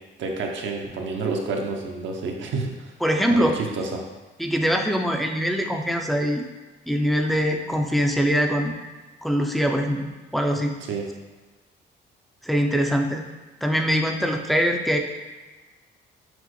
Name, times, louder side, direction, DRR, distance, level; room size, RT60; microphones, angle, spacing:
voice 1, 0.2-2.9 3.3-4.0 10.9-11.1, right 3 dB, 70° right, 1 dB, 0.6 m, -29 dB
voice 2, 3.0-3.6 4.4-6.4 6.9-8.8 9.2-10.7 12.4-13.3 13.6-15.0, equal, ahead, 2 dB, 0.4 m, -23 dB
6.0 x 2.0 x 3.1 m, 1.3 s
cardioid pair, 90°, 20 cm